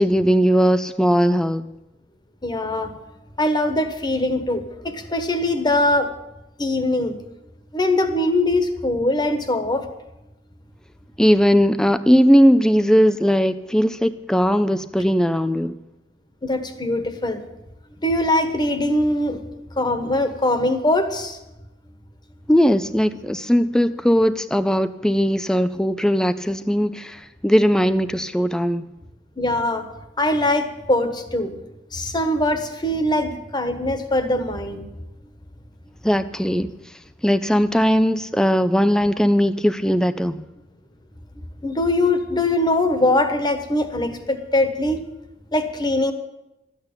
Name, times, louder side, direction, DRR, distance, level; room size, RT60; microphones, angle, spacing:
voice 1, 0.0-1.6 11.2-15.7 22.5-28.9 36.0-36.7 37.2-40.4, equal, 5° left, 12 dB, 0.4 m, -18 dB
voice 2, 2.4-3.0 3.4-6.1 6.6-7.2 7.7-9.9 16.4-17.4 18.0-19.5 19.8-21.4 29.4-29.9 30.2-31.6 31.9-34.9 41.6-45.0 45.5-46.1, left 1 dB, 25° left, 8 dB, 1.3 m, -22 dB
13.0 x 9.0 x 8.8 m, 0.96 s
head